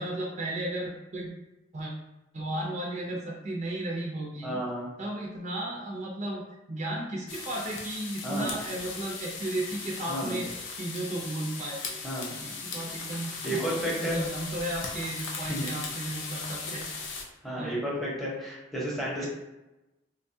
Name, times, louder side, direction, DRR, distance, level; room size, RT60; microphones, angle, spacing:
voice 1, 0.0-1.3 1.7-1.9 2.3-4.6 5.0-6.4 6.7-10.5 10.8-11.8 12.3-13.6 14.0-16.9 17.6-17.8, right 1 dB, 40° right, -3 dB, 0.5 m, -34 dB
voice 2, 4.4-4.9 8.2-8.5 10.1-10.4 12.0-12.3 13.4-14.2 15.5-15.7 17.4-19.3, right 1 dB, ahead, -6 dB, 0.8 m, -32 dB
sound 1, 7.3-17.2, left 4 dB, 75° left, 0.6 m, -38 dB
3.8 x 2.3 x 2.7 m, 1.0 s
head